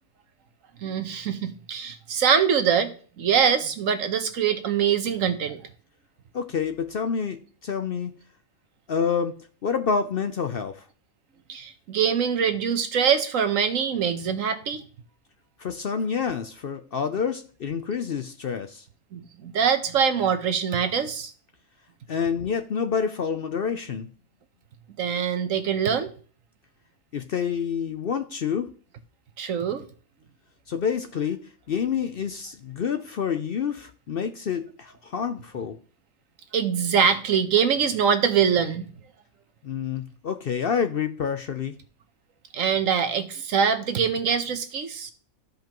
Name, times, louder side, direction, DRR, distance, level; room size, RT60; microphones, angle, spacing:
voice 1, 0.8-5.6 11.5-14.8 19.1-21.3 25.0-26.1 29.4-29.8 36.5-38.9 42.5-45.1, right 7 dB, 70° right, 1.3 m, -23 dB
voice 2, 6.3-8.1 8.9-10.8 15.6-18.8 22.1-24.1 27.1-28.7 30.7-35.8 39.6-41.8, left 6 dB, 55° left, 0.7 m, -28 dB
14.0 x 5.2 x 3.0 m
omnidirectional pair, 1.4 m